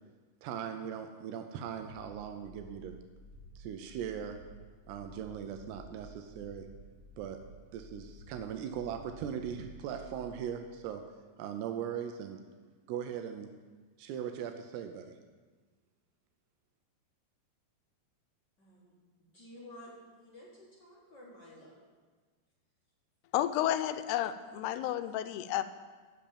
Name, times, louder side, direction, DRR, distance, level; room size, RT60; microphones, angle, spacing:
voice 1, 0.4-3.0 3.6-4.4 4.9-6.7 7.2-7.4 7.7-11.0 11.4-12.4 12.9-13.5 14.0-15.2, right 8 dB, 85° right, 6 dB, 2.7 m, -39 dB
sound 1, 1.8-10.9, equal, 55° right, 1.2 m, -53 dB
voice 2, 18.6-18.9 19.2-21.8, left 1 dB, 45° left, -6 dB, 1.5 m, -52 dB
voice 3, 23.3-25.6, left 12 dB, 85° left, 12 dB, 2.6 m, -31 dB
8.4 x 6.8 x 8.6 m, 1.4 s
omnidirectional pair, 4.7 m